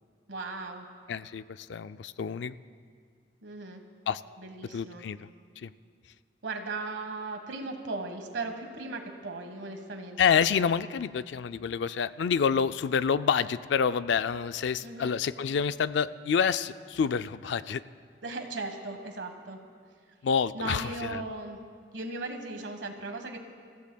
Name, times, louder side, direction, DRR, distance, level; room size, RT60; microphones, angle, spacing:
voice 1, 0.3-0.8 3.4-3.8 4.4-5.0 6.4-10.4 14.8-15.2 18.2-19.6 20.5-21.6 21.9-23.4, right 3 dB, 80° right, 5 dB, 1.4 m, -37 dB
voice 2, 1.1-2.6 4.1-4.2 4.7-5.2 5.6-5.7 10.2-17.8 20.2-21.2, left 6 dB, 70° left, 14 dB, 0.4 m, -28 dB
29.5 x 15.0 x 2.3 m, 2.1 s
head